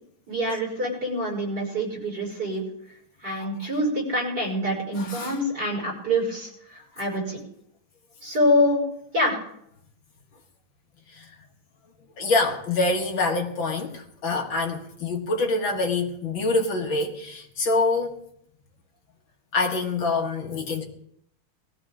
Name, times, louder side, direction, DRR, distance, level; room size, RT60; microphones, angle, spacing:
voice 1, 0.3-2.6 3.2-7.4 8.2-8.8 9.1-9.3, equal, 45° right, -3 dB, 6.6 m, -25 dB
voice 2, 3.4-3.7 5.0-5.4 11.1-11.3 12.2-18.2 19.5-20.8, left 3 dB, 60° left, 1 dB, 2.4 m, -26 dB
21.5 x 14.5 x 3.7 m, 0.75 s
omnidirectional pair, 2.4 m